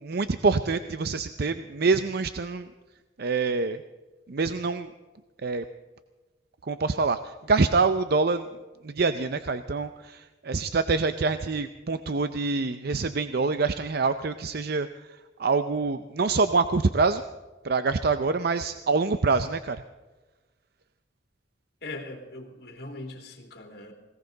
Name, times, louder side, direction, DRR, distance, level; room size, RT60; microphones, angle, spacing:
voice 1, 0.0-2.7 3.2-3.8 4.3-4.9 5.4-5.6 6.6-8.5 8.8-17.2 17.6-19.8, right 4 dB, 55° right, 10 dB, 0.6 m, -26 dB
voice 2, 21.8-23.9, left 2 dB, 60° left, 2 dB, 3.1 m, -40 dB
20.0 x 18.0 x 4.0 m, 1.2 s
head